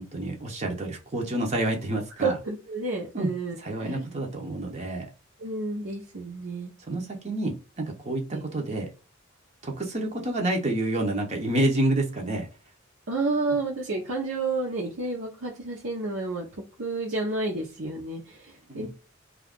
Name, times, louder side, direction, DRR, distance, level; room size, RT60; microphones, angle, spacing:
voice 1, 0.0-2.4 3.1-3.3 3.6-5.1 6.9-8.9 9.6-12.5 18.7-18.9, right 1 dB, 35° right, 1 dB, 0.7 m, -28 dB
voice 2, 2.2-4.1 5.4-6.7 8.3-8.4 13.1-16.5 16.8-18.9, right 3 dB, 70° right, -3 dB, 0.8 m, -30 dB
2.8 x 2.4 x 3.6 m, 0.33 s
head